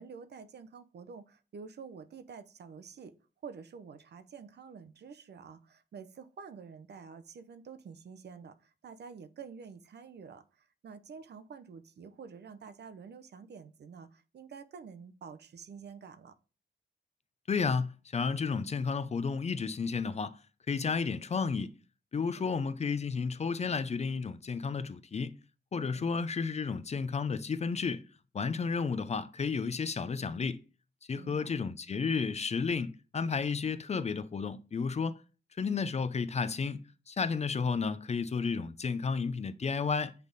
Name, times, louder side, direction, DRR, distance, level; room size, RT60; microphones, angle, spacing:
voice 1, 0.0-3.1 3.4-16.4 22.4-22.6 25.9-26.3 31.2-31.6, right 6 dB, 65° right, 0.6 m, -48 dB
voice 2, 17.5-20.4 20.7-21.7 22.1-25.4 25.7-28.0 28.3-30.6 31.1-35.2 35.6-40.1, left 5 dB, 35° left, 0.4 m, -32 dB
8.2 x 3.5 x 3.9 m
wide cardioid pair, 140°, 19 cm